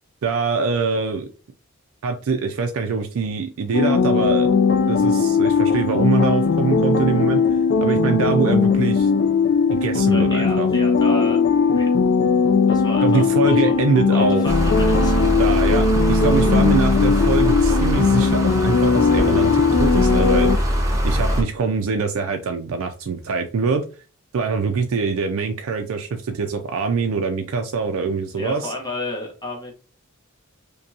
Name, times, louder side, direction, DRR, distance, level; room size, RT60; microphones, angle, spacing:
voice 1, 0.2-1.3 2.0-4.5 4.9-7.4 7.8-9.1 9.7-10.7 13.0-14.4 15.4-20.5 21.0-23.8 24.3-28.7, right 4 dB, 70° right, 5 dB, 0.4 m, -23 dB
sound 1, 3.7-20.6, left 5 dB, 50° left, 0.3 m, -18 dB
voice 2, 10.0-11.4 11.7-11.9 12.7-15.3 21.3-21.4 28.4-29.7, left 1 dB, 20° left, 0 dB, 1.0 m, -32 dB
sound 2, 14.5-21.4, equal, 15° right, 0.7 m, -22 dB
5.1 x 2.2 x 2.7 m, 0.36 s
head